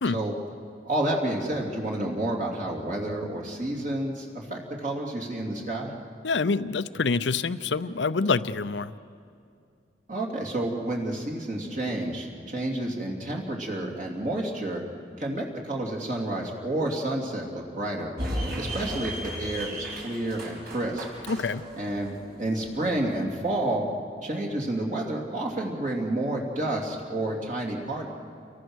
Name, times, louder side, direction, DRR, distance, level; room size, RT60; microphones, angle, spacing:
voice 1, 0.9-5.9 10.1-14.8 15.2-18.1 18.6-21.4 21.8-23.9 24.2-28.1, right 1 dB, 45° right, 0 dB, 3.1 m, -30 dB
voice 2, 6.2-8.9 21.3-21.7, left 4 dB, 70° left, 14 dB, 0.7 m, -26 dB
sound 1, 18.2-23.2, equal, 60° right, 6.2 m, -35 dB
29.0 x 23.0 x 6.4 m, 2.4 s
head